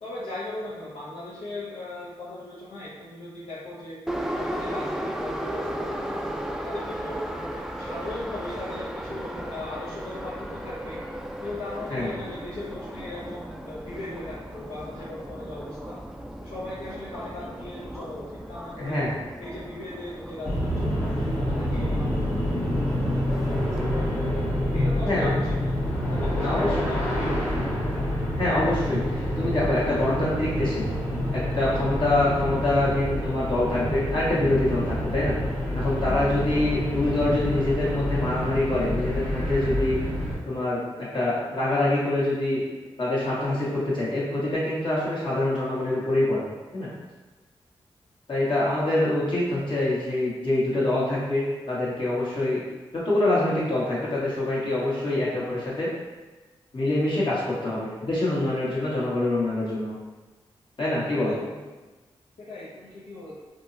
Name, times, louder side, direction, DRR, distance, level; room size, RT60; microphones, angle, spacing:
voice 1, 0.0-4.0 4.3-7.2 7.5-11.0 11.4-16.0 16.4-19.0 19.4-23.1 23.5-24.3 24.7-27.9 36.5-36.6 61.1-61.7 62.4-63.3, left 2 dB, 75° left, -8 dB, 0.6 m, -38 dB
Subway metro underground, 4.1-23.9, right 1 dB, 5° right, 0.3 m, -36 dB
voice 2, 18.8-19.1 25.0-25.3 26.4-26.8 28.4-30.8 31.3-35.3 35.7-40.0 40.4-40.8 41.1-42.6 43.0-46.4 46.7-46.9 48.3-52.6 53.0-55.9 56.7-59.9 60.8-61.4, left 1 dB, 50° left, -7 dB, 1.3 m, -25 dB
sound 1, 20.4-40.4, equal, 20° left, 1.4 m, -27 dB
3.5 x 2.0 x 2.6 m, 1.2 s
supercardioid pair, 45°, 11 cm